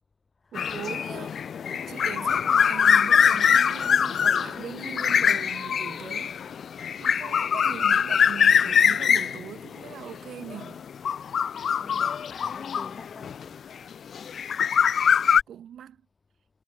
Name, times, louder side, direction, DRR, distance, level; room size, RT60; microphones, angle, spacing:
sound 1, 0.5-13.4 14.1-15.4, left 7 dB, 55° left, 0.3 m, -23 dB
voice 1, 0.5-1.3 1.7-6.3 7.0-10.8 15.5-16.0, right 9 dB, 65° right, 6.0 m, -40 dB
voice 2, 11.4-13.6, left 4 dB, 30° left, 3.2 m, -47 dB
cardioid pair, 90°, 0 cm